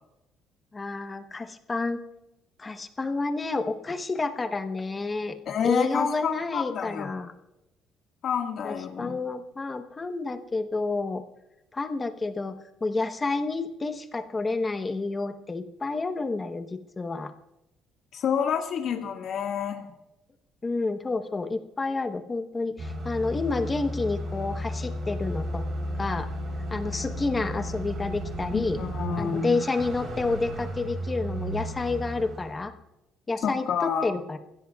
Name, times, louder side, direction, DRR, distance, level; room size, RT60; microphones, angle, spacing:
voice 1, 0.7-2.0 2.6-5.4 5.6-7.3 8.6-11.2 11.7-17.3 20.6-25.6 26.0-26.3 26.7-28.8 29.2-32.7 33.3-34.4, left 3 dB, 20° left, 7 dB, 1.0 m, -29 dB
voice 2, 5.4-7.1 8.2-9.2 18.1-19.9 28.5-29.5 33.4-34.1, left 7 dB, 55° left, 2 dB, 1.8 m, -29 dB
sound 1, 22.8-32.6, equal, 45° right, 3.7 m, -34 dB
29.0 x 15.5 x 2.4 m, 0.92 s
cardioid pair, 140°, 0 cm